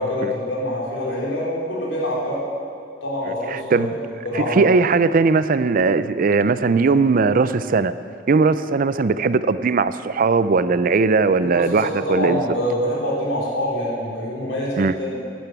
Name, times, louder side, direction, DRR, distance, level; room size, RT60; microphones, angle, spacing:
voice 1, 0.0-2.4 3.0-3.9 4.2-4.6 11.4-11.6 11.9-15.2, left 1 dB, 90° left, -5 dB, 4.1 m, -25 dB
voice 2, 3.5-3.9 4.3-7.9 8.3-12.4 14.8-14.9, right 4 dB, 50° right, 14 dB, 0.4 m, -19 dB
10.5 x 10.5 x 8.1 m, 2.3 s
head